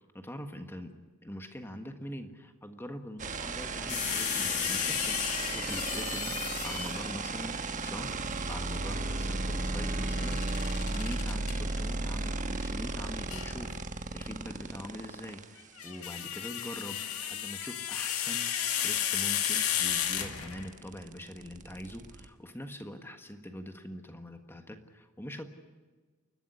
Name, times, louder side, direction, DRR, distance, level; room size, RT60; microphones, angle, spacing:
voice 1, 0.1-0.9 1.2-8.2 8.5-10.5 10.9-25.5, left 1 dB, 10° left, 6 dB, 1.5 m, -43 dB
sound 1, 3.2-15.4 17.6-17.7 17.9-22.3, right 3 dB, 35° right, 1.2 m, -35 dB
sound 2, 3.9-7.2 10.1-11.5 13.3-13.5 15.6-20.7, left 9 dB, 75° left, 1.9 m, -33 dB
29.0 x 12.0 x 9.8 m, 1.3 s
head